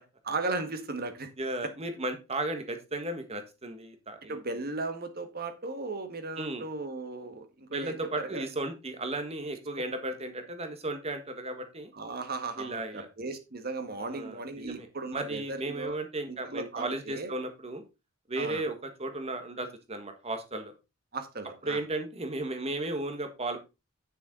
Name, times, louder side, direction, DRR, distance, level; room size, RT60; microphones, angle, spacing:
voice 1, 0.2-1.3 4.3-8.5 11.9-15.9 16.3-17.3 18.4-18.6 21.1-21.8, right 3 dB, 45° right, 7 dB, 1.6 m, -36 dB
voice 2, 1.4-4.4 6.4-6.7 7.7-11.9 12.6-13.1 14.0-17.8 18.3-20.7 21.6-23.6, right 2 dB, 30° right, 7 dB, 1.6 m, -35 dB
8.9 x 7.0 x 3.9 m, 0.27 s
head